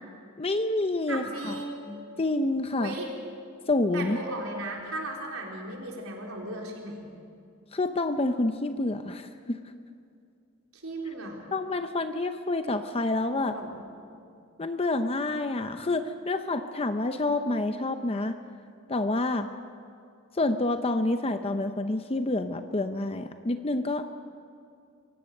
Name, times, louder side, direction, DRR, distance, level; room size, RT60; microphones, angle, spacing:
voice 1, 0.4-1.5 2.2-2.9 3.7-4.2 7.7-9.6 11.5-13.6 14.6-18.4 18.9-19.5 20.3-24.0, left 2 dB, 30° left, 8 dB, 0.7 m, -28 dB
voice 2, 1.1-2.0 2.8-3.1 3.9-7.1 10.7-11.5 13.5-13.9, right 1 dB, 85° right, -1 dB, 4.0 m, -36 dB
23.5 x 17.5 x 6.7 m, 2.4 s
head